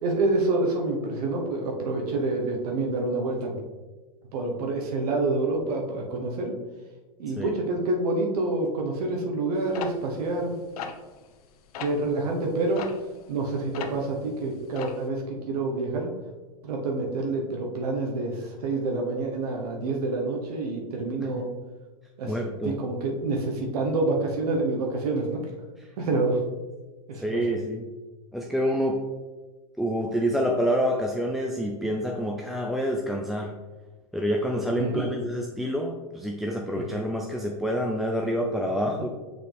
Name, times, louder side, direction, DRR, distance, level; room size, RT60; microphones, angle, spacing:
voice 1, 0.0-3.6 4.3-6.5 7.2-10.6 11.8-12.8 13.3-16.1 16.6-21.5 22.2-22.4 22.6-25.4 26.0-26.4 27.1-27.4 34.8-35.2 36.7-36.8, right 2 dB, 80° right, 1 dB, 1.2 m, -27 dB
sound 1, 9.7-11.5 11.7-12.0 12.8-14.2 14.4-15.1, left 6 dB, 75° left, 0.7 m, -37 dB
voice 2, 22.2-22.8 27.2-27.9 28.3-29.0 29.8-33.5 34.1-39.1, equal, ahead, 0 dB, 0.5 m, -27 dB
6.2 x 5.0 x 3.5 m, 1.2 s
supercardioid pair, 125°, 19 cm